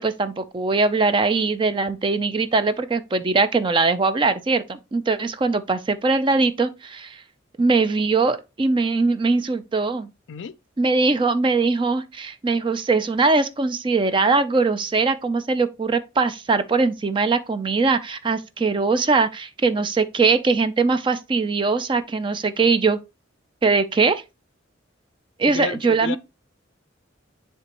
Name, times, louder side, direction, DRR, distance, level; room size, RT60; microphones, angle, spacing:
voice 1, 0.0-7.2 7.6-10.1 10.8-23.0 23.6-24.2 25.4-26.2, right 4 dB, 25° right, 0.4 m, -21 dB
voice 2, 25.4-26.2, left 6 dB, 65° left, 0.4 m, -31 dB
9.7 x 3.4 x 2.9 m
head